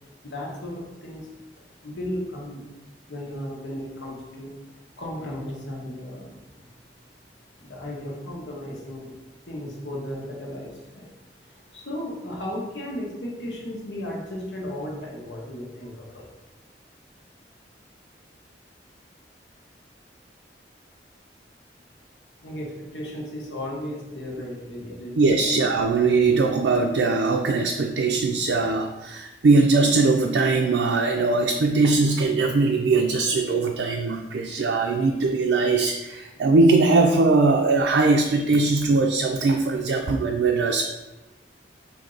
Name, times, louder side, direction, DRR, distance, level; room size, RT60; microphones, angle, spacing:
voice 1, 0.2-1.3 1.8-2.6 3.1-4.5 5.0-6.7 7.6-9.2 9.4-11.1 11.4-16.3 22.4-25.5, left 1 dB, 85° left, -3 dB, 1.2 m, -35 dB
voice 2, 25.2-40.8, right 3 dB, 80° right, 2 dB, 0.4 m, -21 dB
5.2 x 2.7 x 3.8 m, 1.0 s
head